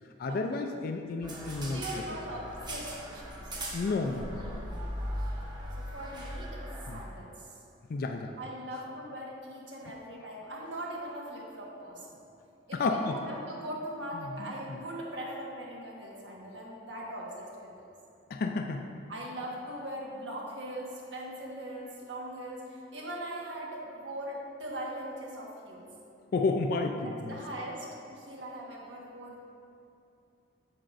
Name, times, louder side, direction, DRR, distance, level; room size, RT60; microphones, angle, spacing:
voice 1, 0.2-1.8 3.7-4.6 6.9-7.0 7.9-8.3 12.7-13.2 14.1-14.2 18.3-18.8 26.3-27.4, left 3 dB, 55° left, 4 dB, 0.3 m, -31 dB
sound 1, 1.2-7.1, equal, 25° right, 0.9 m, -39 dB
voice 2, 1.7-3.3 5.1-5.2 5.5-5.6 5.9-6.6 6.9-7.6 8.4-12.2 12.7-17.9 19.1-25.9 27.0-29.4, right 1 dB, 80° right, -3 dB, 1.4 m, -40 dB
8.7 x 6.7 x 2.5 m, 2.7 s
head